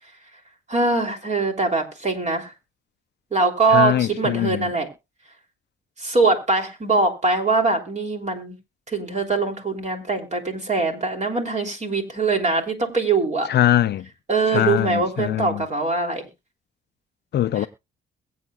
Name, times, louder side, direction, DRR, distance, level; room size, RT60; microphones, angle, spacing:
voice 1, 0.7-2.5 3.3-4.9 6.0-8.5 8.9-13.5 14.3-16.2, right 3 dB, 35° right, 3.2 m, -22 dB
voice 2, 3.7-4.7 13.5-14.1 14.5-15.7 17.3-17.7, left 12 dB, 55° left, 0.5 m, -22 dB
22.0 x 8.5 x 2.3 m
cardioid pair, 90°, 20 cm